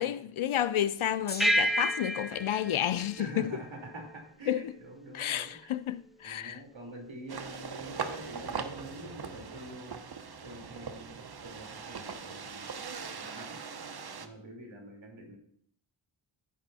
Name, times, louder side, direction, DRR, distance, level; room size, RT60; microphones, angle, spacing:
voice 1, 0.0-3.5 4.5-4.7 5.1-6.6, left 11 dB, 75° left, 0.6 m, -31 dB
Gong, 1.3-7.6 8.4-8.5, left 2 dB, 20° left, 0.9 m, -50 dB
sound 1, 1.4-4.2, right 1 dB, ahead, 0.4 m, -31 dB
voice 2, 3.2-5.6 6.2-10.2 10.4-11.1 11.4-12.7 13.1-13.5 14.2-15.4, right 1 dB, 65° right, 3.0 m, -46 dB
sound 2, 7.3-14.3, right 5 dB, 50° right, 0.9 m, -40 dB
14.5 x 5.3 x 4.1 m
wide cardioid pair, 65°, 50 cm